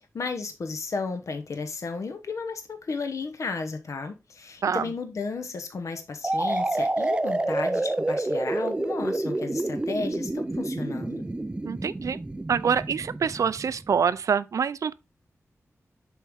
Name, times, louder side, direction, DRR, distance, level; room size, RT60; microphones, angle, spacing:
voice 1, 0.1-11.2, left 4 dB, 70° left, 0.9 m, -33 dB
sound 1, 6.2-13.9, right 2 dB, 20° right, 0.5 m, -28 dB
voice 2, 11.6-12.2 12.5-14.9, right 6 dB, 75° right, 0.4 m, -25 dB
7.1 x 4.7 x 3.6 m
wide cardioid pair, 100°, 6 cm